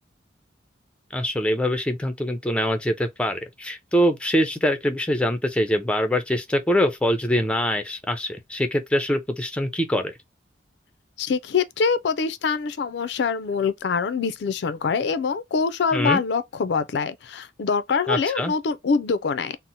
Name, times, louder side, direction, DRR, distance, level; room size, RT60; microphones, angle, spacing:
voice 1, 1.1-10.1 15.9-16.2 18.1-18.5, equal, 5° left, 0.4 m, -24 dB
voice 2, 11.2-19.6, left 5 dB, 70° left, 0.4 m, -24 dB
2.8 x 2.0 x 3.9 m
head